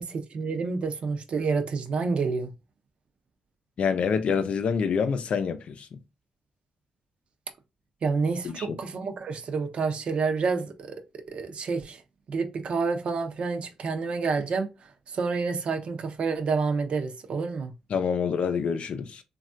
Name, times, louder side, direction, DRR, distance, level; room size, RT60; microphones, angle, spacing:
voice 1, 0.0-2.5 8.0-11.0 11.3-12.0 12.3-14.7 15.1-17.7, right 4 dB, 55° right, 0.6 m, -28 dB
voice 2, 3.8-5.9 8.4-8.8 17.9-19.2, left 6 dB, 65° left, 0.5 m, -27 dB
3.2 x 2.3 x 2.5 m
cardioid pair, 90°, 2 cm